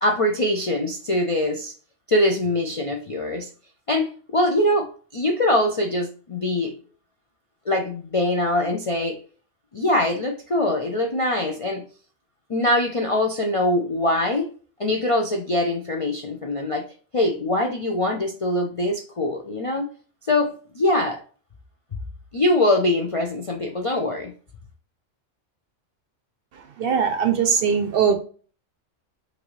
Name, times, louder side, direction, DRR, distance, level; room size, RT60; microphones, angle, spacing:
voice 1, 0.0-1.7 2.1-3.5 3.9-6.7 7.7-9.2 9.7-11.8 12.5-14.5 14.8-16.8 17.1-19.9 20.3-21.2 22.3-24.3, left 1 dB, 50° left, 0.4 m, -23 dB
voice 2, 26.8-28.2, right 7 dB, 60° right, 0.7 m, -20 dB
5.9 x 2.6 x 3.1 m
omnidirectional pair, 1.3 m